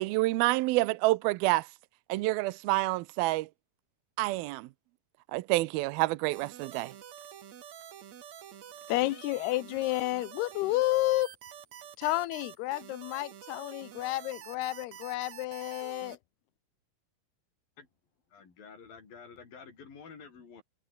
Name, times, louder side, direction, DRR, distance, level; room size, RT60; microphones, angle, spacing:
voice 1, 0.0-1.7 2.1-3.5 4.2-4.7 5.3-6.9, right 20 dB, 80° right, 2.4 m, -28 dB
sound 1, 6.3-16.2, right 9 dB, 55° right, 2.6 m, -48 dB
voice 2, 8.9-11.3 12.0-16.2, left 17 dB, 85° left, 2.9 m, -30 dB
voice 3, 18.3-20.6, left 5 dB, 65° left, 6.5 m, -50 dB
omnidirectional pair, 4.5 m